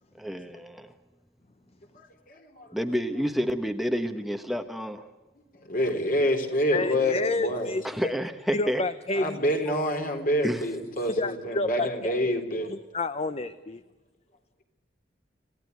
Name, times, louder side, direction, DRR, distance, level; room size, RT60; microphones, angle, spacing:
voice 1, 0.2-0.9 2.7-5.1 7.8-8.8 10.4-10.7, equal, ahead, 6 dB, 1.1 m, -29 dB
voice 2, 2.3-2.7 5.6-7.8 9.1-12.7, equal, 50° left, 4 dB, 3.8 m, -27 dB
voice 3, 6.7-7.8 8.5-9.4 11.2-12.1 12.7-13.8, left 2 dB, 35° left, 12 dB, 0.8 m, -29 dB
27.5 x 16.5 x 8.2 m, 1.2 s
head